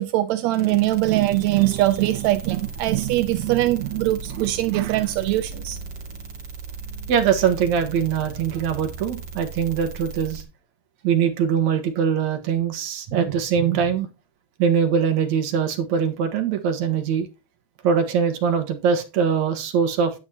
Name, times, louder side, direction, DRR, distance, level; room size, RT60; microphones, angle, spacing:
voice 1, 0.0-5.8, right 16 dB, 80° right, 1.6 m, -22 dB
sound 1, 0.5-10.4, right 4 dB, 45° right, 3.0 m, -37 dB
voice 2, 7.1-10.4 11.0-14.1 14.6-17.3 17.8-20.1, right 7 dB, 60° right, 2.5 m, -22 dB
10.5 x 9.4 x 2.9 m
omnidirectional pair, 3.8 m